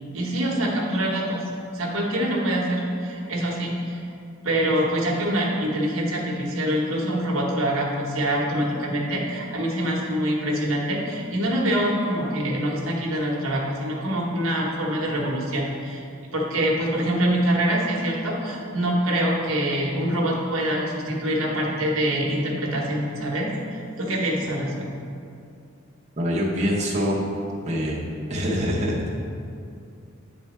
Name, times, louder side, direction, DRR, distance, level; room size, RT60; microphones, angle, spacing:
voice 1, 0.1-1.4 1.7-4.1 4.4-16.0 16.3-23.5 24.0-24.9, right 1 dB, 85° right, -2 dB, 1.1 m, -25 dB
voice 2, 26.2-27.2 27.6-28.0 28.3-29.1, equal, 35° right, -4 dB, 0.8 m, -24 dB
8.8 x 3.4 x 4.2 m, 2.5 s
head